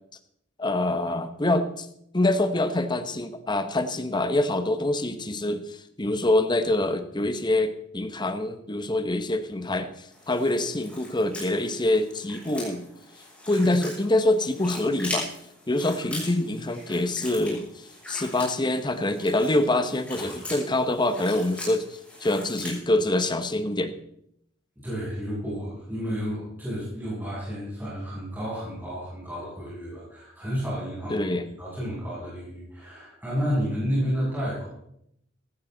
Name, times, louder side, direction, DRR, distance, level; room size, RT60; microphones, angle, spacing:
voice 1, 0.6-1.9 2.1-12.9 13.5-15.3 15.7-17.7 18.1-23.9 31.1-31.5, left 1 dB, 25° left, 10 dB, 1.0 m, -25 dB
sound 1, 10.1-22.8, left 1 dB, 5° left, 6.9 m, -40 dB
voice 2, 24.7-31.3 31.6-34.7, equal, 10° right, -9 dB, 6.9 m, -31 dB
15.5 x 14.5 x 4.0 m, 0.75 s
head